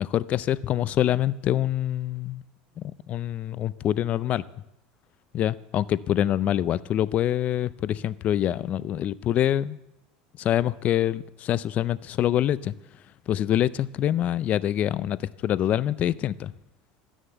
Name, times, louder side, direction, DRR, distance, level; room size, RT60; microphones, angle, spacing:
voice 1, 0.0-2.4 2.8-4.4 5.3-9.8 10.4-12.7 13.3-16.5, left 11 dB, 40° left, 18 dB, 0.4 m, -25 dB
12.5 x 10.0 x 8.0 m, 0.87 s
supercardioid pair, 125°, 4 cm